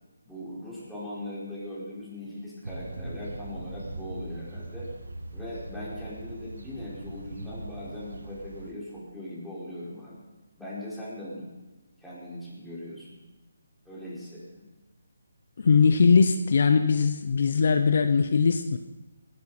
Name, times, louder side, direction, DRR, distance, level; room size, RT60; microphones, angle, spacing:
voice 1, 0.3-4.9 5.3-10.2 10.6-11.5 12.0-13.2 13.8-14.4, left 1 dB, ahead, -11 dB, 4.8 m, -39 dB
sound 1, 2.6-8.7, right 2 dB, 80° right, 1.5 m, -40 dB
voice 2, 15.6-18.8, left 5 dB, 55° left, 8 dB, 0.7 m, -21 dB
19.5 x 11.0 x 4.3 m, 1.1 s
figure-of-eight pair, 155°, 0 cm